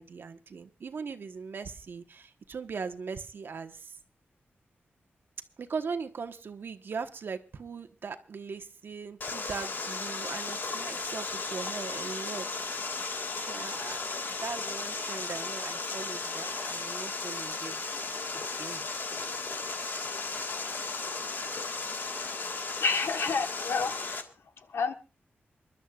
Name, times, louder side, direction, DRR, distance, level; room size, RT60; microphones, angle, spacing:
voice 1, 0.0-4.0 5.6-12.5 12.7-13.2 13.5-14.0 14.4-17.8 18.3-18.9, right 5 dB, 60° right, 1.2 m, -39 dB
Water, 9.2-24.2, left 4 dB, 55° left, 1.6 m, -35 dB
voice 2, 22.8-24.0 24.7-24.9, left 5 dB, 90° left, 1.3 m, -28 dB
27.5 x 12.0 x 2.4 m
wide cardioid pair, 165°, 4 cm